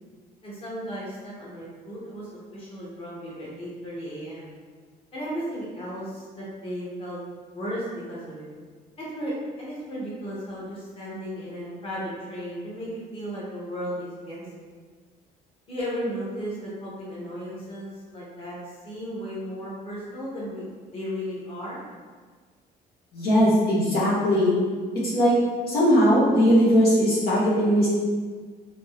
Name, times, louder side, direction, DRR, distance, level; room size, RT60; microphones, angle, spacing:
voice 1, 0.4-4.5 5.1-7.2 7.5-8.5 9.0-9.3 9.6-14.7 15.7-20.6 20.9-21.8, equal, 35° left, -7 dB, 1.3 m, -35 dB
voice 2, 23.1-24.5 25.1-25.3 25.7-27.9, equal, 65° left, -7 dB, 1.2 m, -19 dB
3.3 x 2.9 x 3.1 m, 1.5 s
cardioid pair, 110°, 17 cm